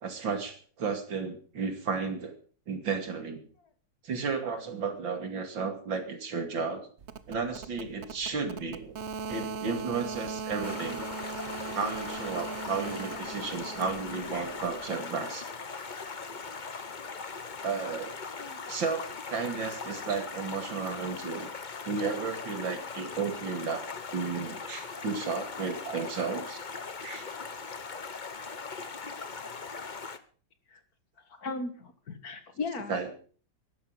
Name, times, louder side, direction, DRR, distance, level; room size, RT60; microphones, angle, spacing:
voice 1, 0.0-2.3 2.7-3.4 4.0-6.9 7.3-8.9 9.3-11.1 11.7-15.5 17.6-18.2 18.7-21.5 21.9-23.8 24.1-26.6 27.0-27.3 32.9-33.0, right 5 dB, 85° right, 6 dB, 3.2 m, -33 dB
sound 1, 7.0-14.9, right 5 dB, 45° right, 1.0 m, -40 dB
Stream, 10.6-30.2, left 5 dB, 30° left, 0.9 m, -40 dB
voice 2, 31.3-33.2, left 3 dB, 55° left, 9 dB, 2.2 m, -38 dB
14.5 x 11.5 x 6.3 m, 0.43 s
omnidirectional pair, 2.0 m